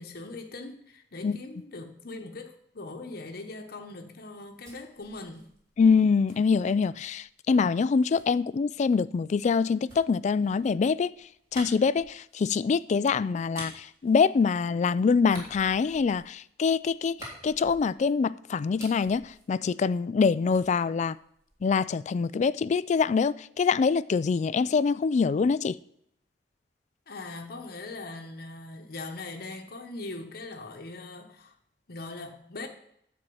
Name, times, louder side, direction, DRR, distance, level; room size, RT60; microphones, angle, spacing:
voice 1, 0.0-5.5 27.1-31.5 31.9-32.7, left 2 dB, 60° left, 1.0 m, -41 dB
sound 1, 4.3-7.3 8.1-14.8 15.2-18.2 18.5-20.2 20.5-21.8, right 1 dB, 20° right, 3.4 m, -50 dB
voice 2, 5.8-11.1 11.5-17.2 17.4-21.2 21.6-25.8, left 5 dB, 40° left, 0.3 m, -25 dB
11.0 x 4.3 x 7.7 m
head